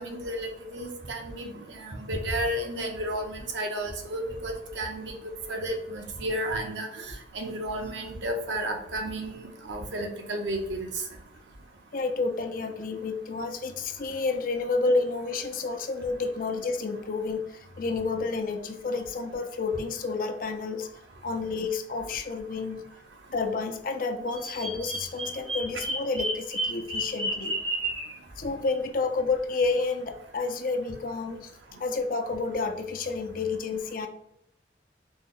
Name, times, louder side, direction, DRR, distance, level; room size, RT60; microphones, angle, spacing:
voice 1, 0.0-5.1 5.5-7.0 7.3-10.9, right 1 dB, 80° right, 2 dB, 0.8 m, -32 dB
voice 2, 11.9-20.9 21.2-22.9 23.3-27.6 28.4-31.5 31.8-34.1, left 3 dB, 50° left, 6 dB, 0.4 m, -30 dB
Bird vocalization bird call bird song, 24.3-28.1, right 1 dB, 30° right, 1.1 m, -31 dB
4.0 x 2.0 x 3.7 m, 0.81 s
head